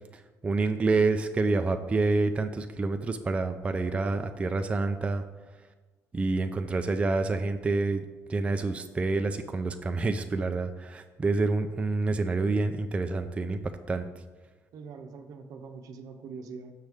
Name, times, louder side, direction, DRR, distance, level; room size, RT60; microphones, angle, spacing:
voice 1, 0.4-5.2 6.1-8.0 8.3-13.6 13.9-14.0, right 3 dB, 20° right, 7 dB, 0.3 m, -27 dB
voice 2, 14.7-16.7, right 5 dB, 70° right, 6 dB, 0.7 m, -43 dB
6.4 x 6.2 x 3.5 m, 1.3 s
cardioid pair, 125°, 6 cm